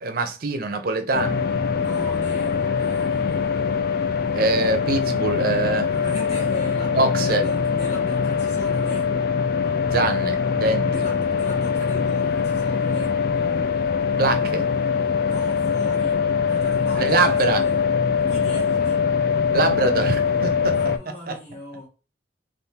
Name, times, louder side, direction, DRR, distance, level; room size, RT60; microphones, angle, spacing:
voice 1, 0.0-1.4 4.3-5.9 6.9-7.5 9.9-11.0 14.2-14.6 17.0-17.6 19.5-21.4, right 3 dB, 55° right, 0.5 m, -23 dB
sound 1, 1.1-21.0, left 6 dB, 55° left, 0.3 m, -23 dB
voice 2, 1.8-3.6 5.9-9.1 10.9-13.2 15.2-17.8 18.2-19.0 20.7-21.9, left 1 dB, 40° left, 1.5 m, -38 dB
3.5 x 2.5 x 2.8 m
head